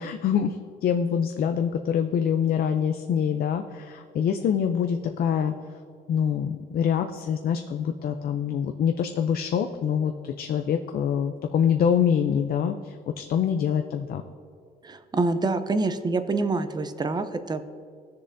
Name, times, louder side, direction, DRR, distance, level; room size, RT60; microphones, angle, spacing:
voice 1, 0.0-5.5 6.1-14.2, left 8 dB, 60° left, 6 dB, 0.5 m, -25 dB
voice 2, 14.8-17.7, right 3 dB, 25° right, 10 dB, 0.6 m, -26 dB
17.0 x 6.6 x 2.6 m, 2.1 s
cardioid pair, 100°, 17 cm